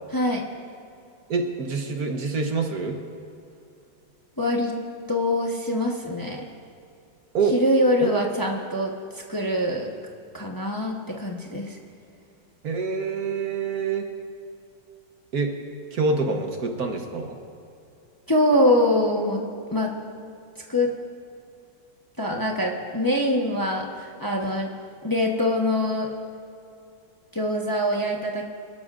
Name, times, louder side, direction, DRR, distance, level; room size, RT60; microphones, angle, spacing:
voice 1, 0.1-0.4 4.4-4.8 5.1-6.4 7.5-9.9 10.3-11.8 18.3-19.4 19.7-19.9 20.7-20.9 22.2-24.7 25.0-26.1 27.3-28.4, left 1 dB, 20° left, -1 dB, 0.6 m, -24 dB
voice 2, 1.3-3.0 7.3-7.6 8.0-8.1 12.6-14.0 15.3-15.5 15.9-17.4, right 4 dB, 55° right, 3 dB, 1.3 m, -26 dB
25.5 x 13.0 x 2.5 m, 2.5 s
omnidirectional pair, 2.1 m